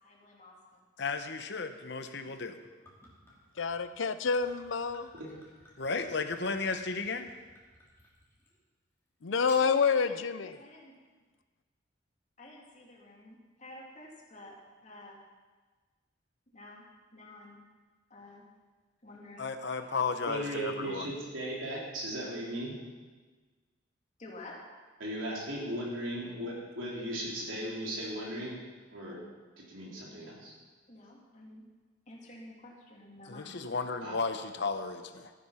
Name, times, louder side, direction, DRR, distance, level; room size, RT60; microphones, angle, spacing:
voice 1, 0.0-0.9 9.6-10.9 12.4-14.6 14.8-15.2 16.5-16.8 17.1-17.6 18.1-18.4 19.0-19.5 19.8-19.9 24.2-24.6 30.9-31.6 32.1-33.6, left 1 dB, 40° left, -2 dB, 2.8 m, -50 dB
voice 2, 1.0-2.6 5.8-7.3 19.4-21.1 33.3-35.3, left 4 dB, 60° left, 8 dB, 0.9 m, -34 dB
Gurgling / Chink clink / Liquid, 2.5-8.6 9.3-9.7, left 1 dB, 15° left, 2.9 m, -56 dB
voice 3, 3.6-5.1 9.2-10.6, left 5 dB, 80° left, 12 dB, 0.6 m, -28 dB
voice 4, 20.3-22.8 25.0-28.6 28.9-29.2 29.6-30.5 34.0-34.2, right 1 dB, 90° right, -4 dB, 4.1 m, -37 dB
14.0 x 9.6 x 5.7 m, 1.4 s
head